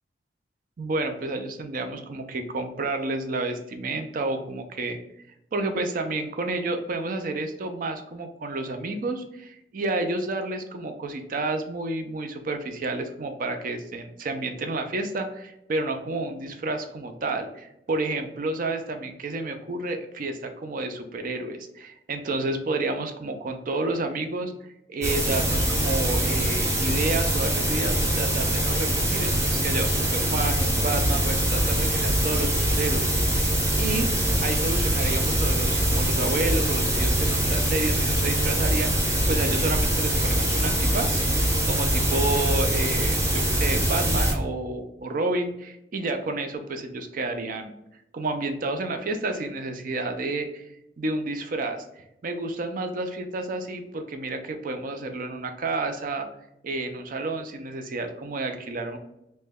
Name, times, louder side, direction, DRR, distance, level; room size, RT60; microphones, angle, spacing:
voice 1, 0.8-5.0 5.5-24.5 24.9-33.5 33.8-34.1 34.4-41.2 41.7-47.7 48.1-50.7 51.0-56.3 56.6-59.0, right 2 dB, 50° right, 6 dB, 0.5 m, -30 dB
sound 1, 25.0-44.3, right 1 dB, 15° right, 0.8 m, -23 dB
3.0 x 2.1 x 3.5 m, 0.84 s
head